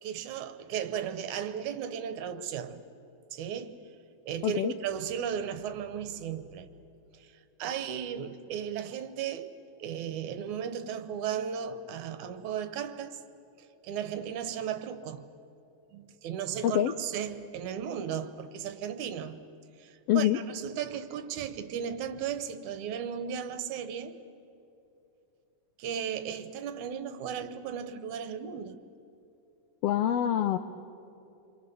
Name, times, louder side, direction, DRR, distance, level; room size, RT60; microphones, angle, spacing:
voice 1, 0.0-2.8 3.3-3.8 4.3-6.7 7.1-7.3 7.6-9.5 9.8-13.2 13.8-15.3 15.9-19.4 19.8-24.2 25.8-28.8, right 8 dB, 70° right, 2.3 m, -35 dB
voice 2, 20.1-20.4 29.8-30.6, left 11 dB, 90° left, 1.3 m, -25 dB
29.5 x 23.5 x 6.9 m
omnidirectional pair, 3.7 m